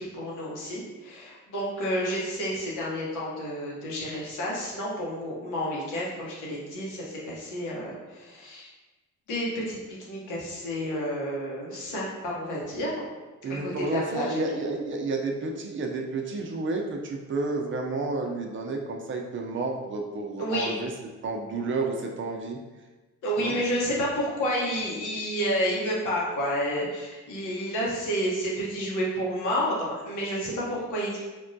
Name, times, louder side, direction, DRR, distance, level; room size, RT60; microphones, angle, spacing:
voice 1, 0.0-8.7 9.3-9.8 10.1-12.9 13.8-14.3 20.4-20.8 23.2-31.2, equal, 90° left, -5 dB, 1.0 m, -30 dB
voice 2, 13.4-20.9 21.2-22.6 23.4-23.6, right 3 dB, 40° right, 2 dB, 0.5 m, -30 dB
3.4 x 2.2 x 2.6 m, 1.2 s
cardioid pair, 90°, 30 cm